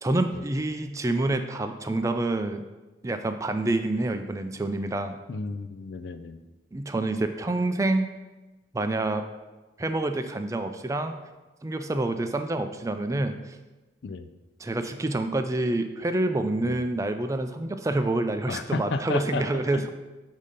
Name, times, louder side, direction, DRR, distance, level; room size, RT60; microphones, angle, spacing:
voice 1, 0.0-2.6 3.0-5.2 6.7-8.1 8.7-9.2 9.8-11.2 11.6-13.4 14.6-19.9, right 2 dB, 20° right, 8 dB, 0.3 m, -27 dB
voice 2, 5.3-6.4 14.0-14.3 16.6-16.8 18.5-19.5 19.7-19.8, left 3 dB, 75° left, 10 dB, 0.4 m, -32 dB
8.3 x 2.8 x 5.4 m, 1.1 s
head